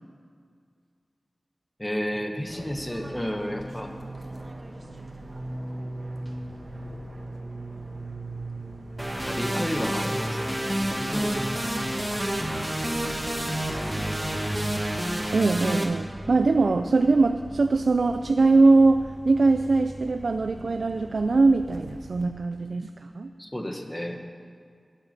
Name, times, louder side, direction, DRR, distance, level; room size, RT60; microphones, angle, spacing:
voice 1, 1.8-3.9 9.2-10.6 11.0-12.0 13.4-13.6 23.4-24.2, equal, 15° left, 4 dB, 1.4 m, -32 dB
Fixed-wing aircraft airplane, 2.5-22.2, right 1 dB, 55° right, 1.5 m, -40 dB
sound 1, 9.0-15.8, right 1 dB, 15° right, 1.9 m, -29 dB
voice 2, 15.3-23.3, right 3 dB, 85° right, 8 dB, 0.4 m, -21 dB
12.5 x 9.2 x 7.6 m, 2.2 s
wide cardioid pair, 55°, 0 cm